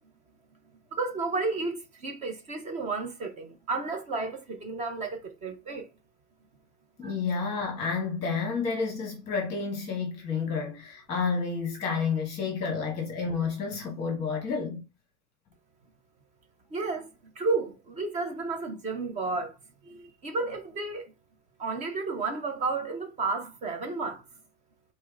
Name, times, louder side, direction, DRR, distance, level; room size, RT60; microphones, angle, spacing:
voice 1, 0.9-5.9 7.0-7.1 16.7-17.1 17.4-19.6 19.8-21.0 21.6-24.2, right 3 dB, 15° right, 0.5 m, -32 dB
voice 2, 7.0-14.8, left 5 dB, 15° left, 1.3 m, -30 dB
3.5 x 3.1 x 4.7 m
supercardioid pair, 170°, 45 cm